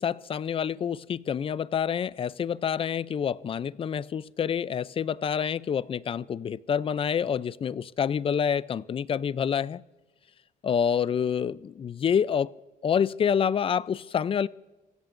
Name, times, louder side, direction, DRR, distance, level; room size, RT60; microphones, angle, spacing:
voice 1, 0.0-9.8 10.6-12.5 12.8-14.5, left 7 dB, 35° left, 19 dB, 0.4 m, -27 dB
27.0 x 16.5 x 2.6 m, 1.1 s
cardioid pair, 110°, 17 cm